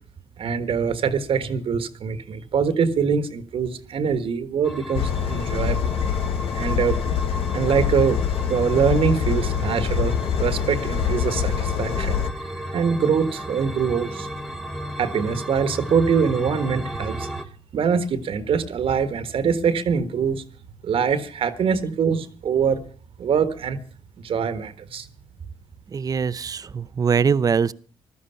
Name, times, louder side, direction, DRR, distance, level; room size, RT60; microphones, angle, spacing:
voice 1, 0.4-6.0 6.5-7.0 7.5-8.2 8.5-14.3 15.0-17.3 17.7-20.4 20.8-22.8 23.2-23.8 24.2-25.1, right 6 dB, 65° right, 1.5 m, -23 dB
sound 1, 4.6-17.4, equal, 5° left, 1.8 m, -35 dB
sound 2, 4.9-12.3, left 8 dB, 70° left, 1.1 m, -25 dB
voice 2, 25.9-27.7, right 6 dB, 40° right, 0.7 m, -22 dB
15.5 x 12.5 x 5.7 m
cardioid pair, 95°, 10 cm